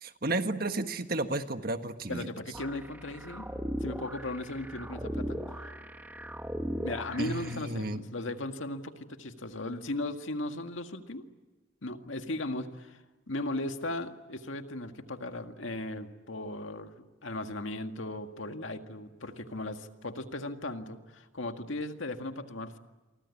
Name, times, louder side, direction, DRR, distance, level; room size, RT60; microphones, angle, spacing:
voice 1, 0.0-2.3 7.2-8.0, right 2 dB, 50° right, 8 dB, 1.5 m, -32 dB
voice 2, 2.1-3.5 3.8-5.7 6.8-11.2 11.8-16.9 17.2-22.8, left 2 dB, 85° left, 6 dB, 2.0 m, -37 dB
sound 1, 2.5-7.6, equal, 10° right, 1.7 m, -38 dB
29.0 x 24.0 x 8.5 m, 1.2 s
head